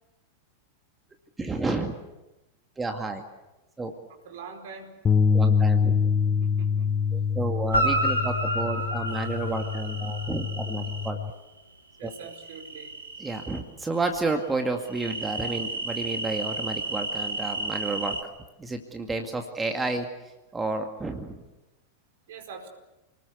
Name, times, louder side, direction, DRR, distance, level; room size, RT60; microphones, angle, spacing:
voice 1, 1.4-1.9 2.8-3.2 3.8-3.9 5.3-5.9 7.1-11.2 12.0-12.1 13.2-18.2 18.6-20.1 20.5-21.4, right 3 dB, 10° right, 4 dB, 2.1 m, -31 dB
voice 2, 4.2-5.0 6.4-6.9 12.0-13.0 22.3-22.7, right 5 dB, 55° right, 5 dB, 4.8 m, -43 dB
sound 1, 5.1-11.3, left 6 dB, 20° left, 0.9 m, -25 dB
Guitar, 7.7-10.2 14.1-14.2, right 1 dB, 80° left, 4.2 m, -28 dB
sound 2, 9.1-11.1 12.1-13.6 14.8-18.2, right 2 dB, 80° right, 2.9 m, -35 dB
29.0 x 20.0 x 8.3 m, 1.0 s
figure-of-eight pair, 90°, 0 cm